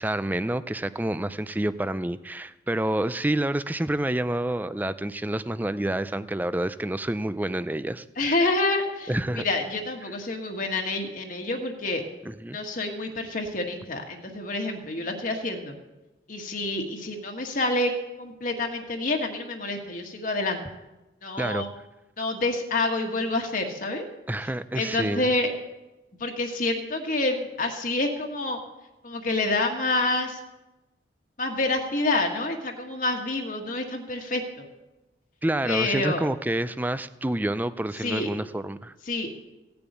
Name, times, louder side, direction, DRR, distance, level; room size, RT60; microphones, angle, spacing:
voice 1, 0.0-8.0 9.1-9.4 12.3-12.6 21.4-21.7 24.3-25.3 35.4-38.9, right 1 dB, 10° right, 14 dB, 0.4 m, -28 dB
voice 2, 8.2-12.0 12.5-15.8 16.3-17.9 18.2-20.6 21.2-21.7 22.2-24.1 24.7-25.5 26.2-28.6 29.0-30.4 31.4-34.6 35.6-36.3 38.0-38.3 39.0-39.3, left 2 dB, 45° left, 2 dB, 1.6 m, -28 dB
16.0 x 7.0 x 9.1 m, 1.0 s
head